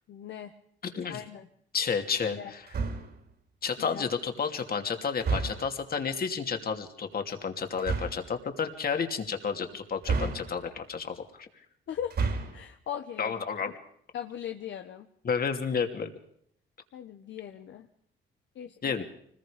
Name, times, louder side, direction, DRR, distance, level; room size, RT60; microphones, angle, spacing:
voice 1, 0.1-0.5 1.0-1.5 2.2-2.5 3.8-4.1 11.9-13.3 14.1-15.1 16.9-17.9 18.5-19.0, left 9 dB, 70° left, 6 dB, 1.2 m, -39 dB
voice 2, 1.7-2.7 3.6-11.5 13.2-13.7 15.2-16.1 18.8-19.0, left 6 dB, 50° left, 6 dB, 2.8 m, -31 dB
sound 1, 2.7-3.2 5.2-5.8 7.8-8.3 10.0-10.8 12.0-12.7, right 4 dB, 55° right, 3.6 m, -31 dB
25.5 x 20.5 x 5.2 m, 0.70 s
cardioid pair, 90°, 20 cm